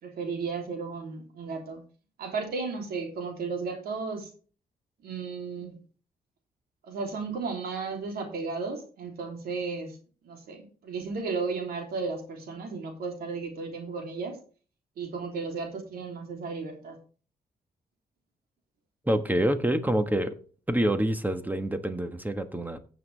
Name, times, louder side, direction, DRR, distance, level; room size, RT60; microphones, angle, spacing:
voice 1, 0.0-1.8 2.2-4.3 5.0-5.8 6.8-10.0 10.2-14.4 15.0-17.0, right 4 dB, 85° right, 3 dB, 3.1 m, -34 dB
voice 2, 19.0-20.3 20.7-22.8, right 1 dB, 10° right, 9 dB, 1.3 m, -26 dB
15.0 x 7.4 x 3.4 m, 0.39 s
cardioid pair, 80°, 15 cm